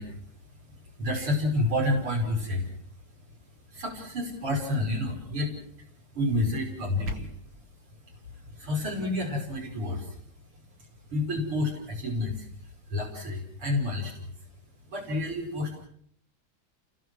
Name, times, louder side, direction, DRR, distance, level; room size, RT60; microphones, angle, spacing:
voice 1, 0.0-14.5 14.9-15.9, left 1 dB, 90° right, -1 dB, 6.5 m, -31 dB
sound 1, 6.6-7.6, left 2 dB, 75° right, 3.1 m, -39 dB
29.5 x 22.0 x 6.4 m, 0.64 s
omnidirectional pair, 2.3 m